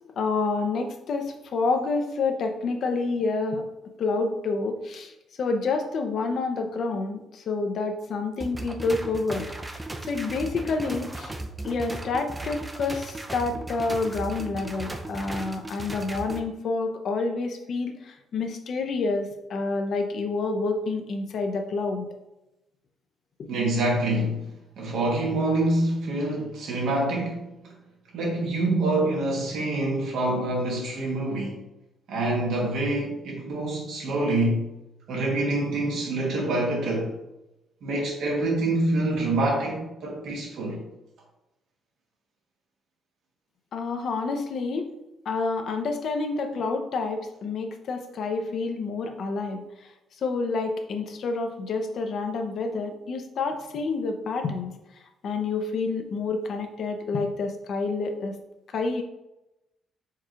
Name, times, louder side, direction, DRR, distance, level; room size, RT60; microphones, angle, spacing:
voice 1, 0.0-3.7 4.0-5.1 5.4-11.3 11.6-22.1 43.7-44.9 45.3-49.9 50.2-58.4 58.7-59.0, left 3 dB, 60° left, 0.6 m, -28 dB
sound 1, 8.4-16.4, right 2 dB, 15° right, 0.5 m, -36 dB
voice 2, 23.5-24.4 24.8-27.7 28.1-31.6 32.1-34.7 35.1-37.1 37.8-40.8, right 2 dB, 75° right, 1.4 m, -26 dB
4.7 x 2.4 x 4.5 m
cardioid pair, 90°, 0 cm